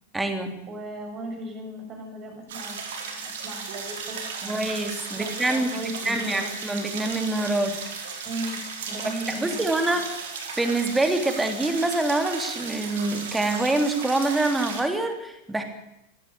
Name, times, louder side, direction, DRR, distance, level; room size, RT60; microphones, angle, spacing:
voice 1, 0.1-0.5 4.5-5.7 6.0-7.9 9.0-10.0 10.6-15.6, right 2 dB, 10° right, 6 dB, 3.2 m, -25 dB
voice 2, 0.7-4.7 5.1-6.5 8.2-10.0, right 1 dB, 30° right, 3 dB, 6.8 m, -37 dB
sound 1, 2.5-14.8, right 5 dB, 60° right, 4.4 m, -35 dB
21.0 x 16.0 x 8.5 m, 0.88 s
figure-of-eight pair, 90°, 0 cm